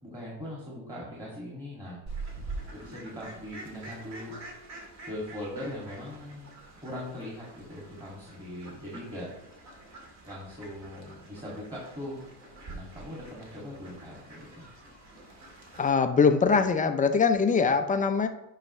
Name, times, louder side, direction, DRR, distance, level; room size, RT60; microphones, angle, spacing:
voice 1, 0.0-2.0 2.7-4.3 5.1-6.5 6.8-9.3 10.2-12.2 12.7-14.7, left 1 dB, 10° right, -5 dB, 2.4 m, -40 dB
Fowl, 2.1-15.9, right 3 dB, 40° right, 2.3 m, -46 dB
voice 2, 15.8-18.3, left 5 dB, 20° left, 8 dB, 0.6 m, -22 dB
9.1 x 5.7 x 3.2 m, 0.92 s
cardioid pair, 125°, 44 cm